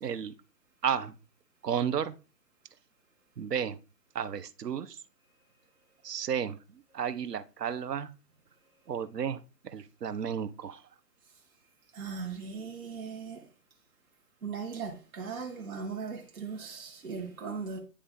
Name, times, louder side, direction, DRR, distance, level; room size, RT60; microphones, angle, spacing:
voice 1, 0.0-0.3 0.8-1.2 1.6-2.1 3.4-3.8 4.1-5.0 6.0-8.1 8.9-10.8, right 8 dB, 80° right, 0.9 m, -33 dB
voice 2, 11.9-13.4 14.4-17.8, right 5 dB, 60° right, 1.7 m, -38 dB
9.9 x 3.3 x 3.6 m
hypercardioid pair, 165°, 48 cm